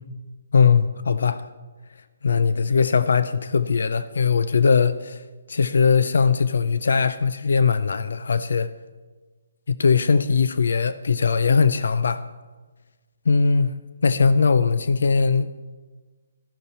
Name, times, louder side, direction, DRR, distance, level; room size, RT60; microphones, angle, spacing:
voice 1, 0.5-1.4 2.2-5.2 5.5-8.7 9.7-12.2 13.3-15.5, left 5 dB, 70° left, 13 dB, 0.5 m, -20 dB
12.5 x 10.0 x 4.2 m, 1.3 s
hypercardioid pair, 155°, 0 cm